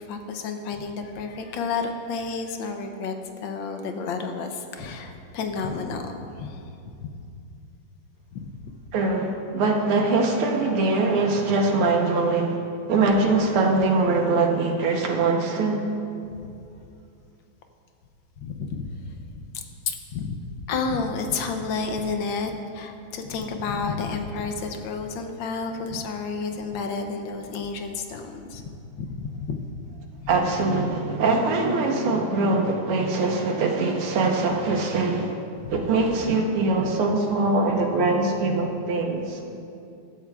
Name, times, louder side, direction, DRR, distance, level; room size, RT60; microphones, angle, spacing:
voice 1, 0.0-7.1 8.3-8.5 16.3-16.6 18.4-18.9 19.5-20.4 20.7-29.6 35.6-35.8, left 4 dB, 70° left, 5 dB, 1.4 m, -31 dB
voice 2, 8.9-12.6 12.9-15.8 30.3-35.4 35.7-39.4, right 3 dB, 80° right, 1 dB, 1.9 m, -22 dB
15.0 x 12.0 x 2.4 m, 2.6 s
omnidirectional pair, 2.4 m